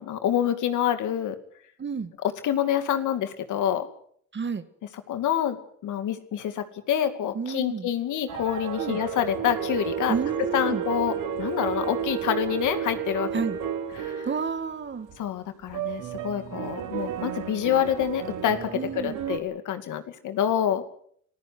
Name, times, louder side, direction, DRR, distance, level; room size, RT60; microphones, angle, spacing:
voice 1, 0.0-1.4 2.2-3.9 5.1-10.1 10.5-11.1 11.4-13.3 13.9-14.3 15.2-20.8, left 10 dB, 80° left, 9 dB, 2.5 m, -27 dB
voice 2, 1.8-2.1 4.3-4.6 7.3-7.9 8.8-9.0 10.1-10.8 13.3-13.6 14.3-15.1 18.8-19.2, right 5 dB, 40° right, 11 dB, 1.9 m, -30 dB
sound 1, 8.3-14.6 14.9-15.2 15.7-19.4, right 8 dB, 85° right, 3.1 m, -32 dB
26.0 x 15.0 x 7.9 m, 0.63 s
cardioid pair, 90°, 30 cm